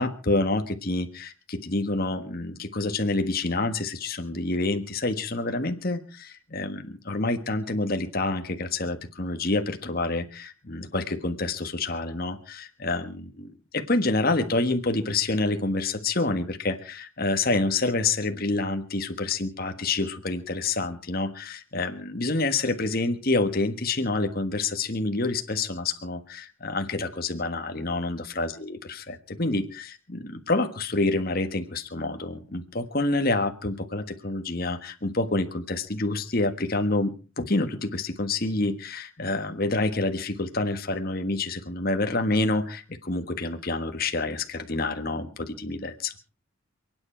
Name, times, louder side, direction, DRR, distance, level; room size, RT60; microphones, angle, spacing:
voice 1, 0.0-46.1, left 2 dB, 45° left, 7 dB, 1.5 m, -28 dB
28.5 x 9.7 x 4.5 m, 0.37 s
head